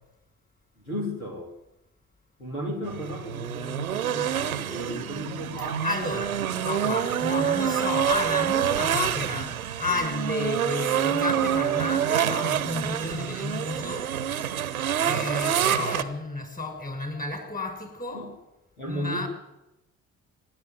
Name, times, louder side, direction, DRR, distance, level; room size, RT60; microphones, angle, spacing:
voice 1, 0.8-1.5 2.4-5.8 18.1-18.3 18.8-19.3, equal, 90° left, 3.1 m, -34 dB
sound 1, 2.8-16.0, right 9 dB, 85° right, 0.9 m, -27 dB
voice 2, 5.6-14.1 15.0-18.3 18.8-19.3, left 2 dB, 20° left, 6.2 m, -32 dB
25.5 x 11.0 x 9.4 m
figure-of-eight pair, 50°, 42 cm